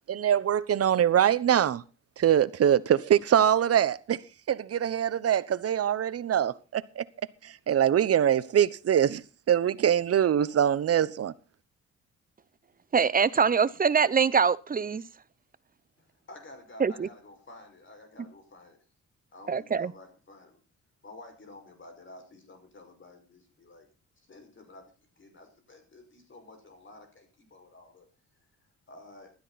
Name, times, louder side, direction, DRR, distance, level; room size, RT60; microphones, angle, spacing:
voice 1, 0.1-1.8 2.2-4.2 4.5-7.0 7.4-11.3, right 10 dB, 50° right, 1.1 m, -24 dB
voice 2, 12.9-15.0 16.8-17.1 19.5-19.9, right 6 dB, 30° right, 0.8 m, -24 dB
voice 3, 16.0-18.8 19.3-20.6 21.0-23.9 24.2-28.1 28.9-29.3, left 2 dB, 40° left, 5.8 m, -51 dB
16.0 x 12.5 x 4.2 m
cardioid pair, 90°, 30 cm